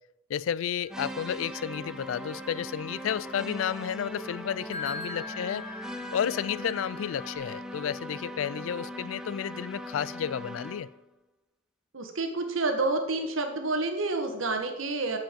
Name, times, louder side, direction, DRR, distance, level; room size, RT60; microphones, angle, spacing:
voice 1, 0.3-5.7 6.1-10.9, left 9 dB, 70° left, 0.3 m, -32 dB
sound 1, 0.8-7.4, left 4 dB, 30° left, 1.9 m, -44 dB
sound 2, 0.9-11.0, equal, 5° right, 0.5 m, -40 dB
voice 2, 11.9-15.2, right 3 dB, 75° right, 1.4 m, -29 dB
7.5 x 7.5 x 5.2 m
head